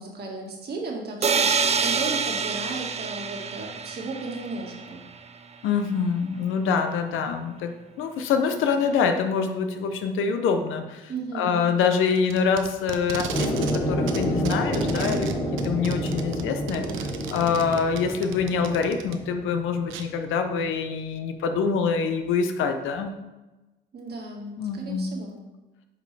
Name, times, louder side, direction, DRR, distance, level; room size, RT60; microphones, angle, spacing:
voice 1, 0.0-5.0 11.1-11.7 23.9-25.4, right 3 dB, 55° right, 0 dB, 1.8 m, -35 dB
sound 1, 1.2-5.0, right 5 dB, 35° right, 0.5 m, -26 dB
voice 2, 5.6-7.7 8.0-15.3 15.6-16.8 17.3-23.1 24.6-25.1, left 5 dB, 85° left, 7 dB, 0.8 m, -25 dB
Packing tape duct tape, 12.1-13.8 14.1-19.1 19.9-20.0, right 7 dB, 80° right, 0.7 m, -34 dB
sound 2, 13.3-20.1, equal, 20° left, 1.9 m, -29 dB
8.4 x 5.3 x 3.3 m, 1.1 s
cardioid pair, 90°, 20 cm